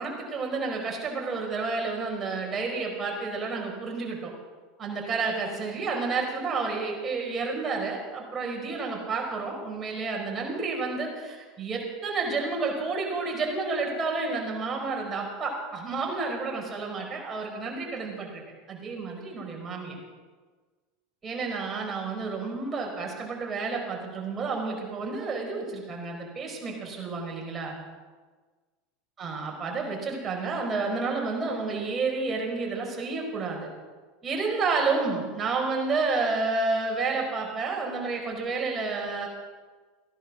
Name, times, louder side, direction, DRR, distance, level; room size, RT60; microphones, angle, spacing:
voice 1, 0.0-4.3 4.8-18.4 18.7-20.0 21.2-27.7 29.2-33.7 34.2-39.3, right 4 dB, 25° right, 0 dB, 4.8 m, -30 dB
15.5 x 11.0 x 6.2 m, 1.4 s
supercardioid pair, 100°, 0 cm